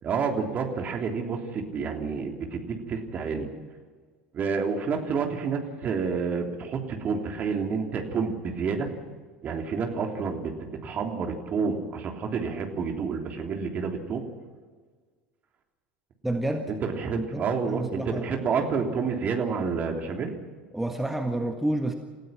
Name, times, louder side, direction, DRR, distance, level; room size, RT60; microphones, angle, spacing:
voice 1, 0.0-3.5 4.3-8.9 9.4-14.2 16.8-20.3, right 5 dB, 35° right, 3 dB, 3.3 m, -29 dB
voice 2, 16.2-16.7 17.1-18.2 20.7-21.9, right 1 dB, 5° right, 5 dB, 1.6 m, -29 dB
29.0 x 15.5 x 6.0 m, 1.5 s
figure-of-eight pair, 70°, 5 cm